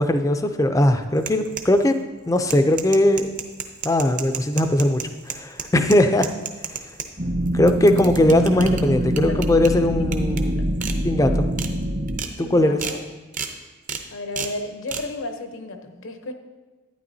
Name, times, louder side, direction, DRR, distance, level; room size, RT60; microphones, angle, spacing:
voice 1, 0.0-2.0 2.3-3.3 3.8-6.3 7.5-10.6 11.0-11.5 12.4-12.8, left 1 dB, 15° left, 8 dB, 0.4 m, -19 dB
sound 1, 1.2-2.0 2.4-7.1 7.5-8.8 9.2-9.7 10.1-10.4 10.8-11.0 11.3-11.7 12.1-12.3 12.8-13.0 13.3-13.5 13.9-14.0 14.4-14.5 14.9-15.0, right 7 dB, 40° right, 0.6 m, -31 dB
sound 2, 7.2-12.2, equal, 60° right, 1.3 m, -24 dB
voice 2, 12.4-13.0 14.1-16.3, left 2 dB, 75° left, 6 dB, 0.8 m, -33 dB
11.5 x 9.4 x 2.7 m, 1.2 s
head